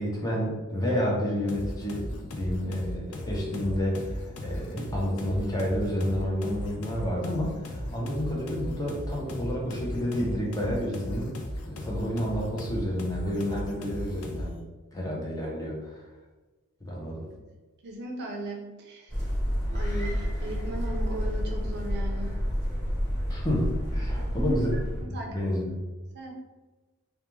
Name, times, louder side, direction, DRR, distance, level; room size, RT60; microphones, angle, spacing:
voice 1, 0.0-2.0 2.3-4.2 4.4-11.3 11.7-14.6 14.9-16.0 16.9-17.2 23.3-24.7 25.1-25.8, equal, 15° left, -4 dB, 0.5 m, -30 dB
sound 1, 1.5-14.6, equal, 80° left, 0.4 m, -37 dB
voice 2, 17.8-19.1 19.7-22.3 24.2-24.6 25.0-25.6 26.1-26.5, right 1 dB, 50° right, 1 dB, 0.4 m, -37 dB
sound 2, 19.1-25.0, equal, 50° left, 1.0 m, -29 dB
2.3 x 2.2 x 3.0 m, 1.2 s
head